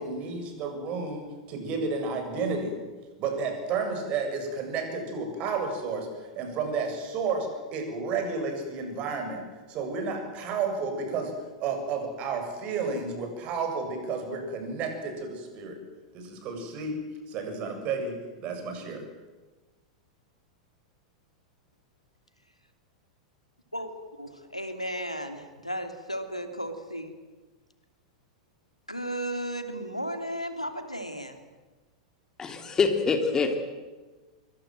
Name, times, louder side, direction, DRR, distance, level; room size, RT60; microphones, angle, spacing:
voice 1, 0.0-2.7 3.2-11.3 11.6-15.8 16.1-17.0 17.3-19.0, right 4 dB, 35° right, 4 dB, 7.6 m, -32 dB
voice 2, 24.2-27.1 28.9-31.4, equal, 90° left, 7 dB, 2.8 m, -34 dB
voice 3, 32.4-33.6, left 4 dB, 20° left, 6 dB, 3.2 m, -25 dB
27.0 x 24.0 x 7.8 m, 1.3 s
figure-of-eight pair, 95°, 3 cm